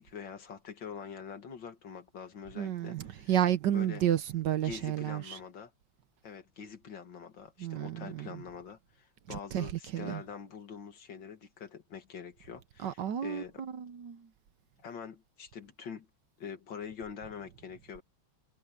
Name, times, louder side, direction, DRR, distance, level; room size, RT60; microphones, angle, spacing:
voice 1, 0.0-3.3 3.7-4.0 4.6-5.7 6.2-13.6 14.8-16.1 16.4-18.0, left 7 dB, 65° left, 2.5 m, -45 dB
voice 2, 2.6-5.4 7.6-8.3 9.3-10.2 12.8-14.3, right 11 dB, 65° right, 1.5 m, -31 dB
omnidirectional pair, 2.2 m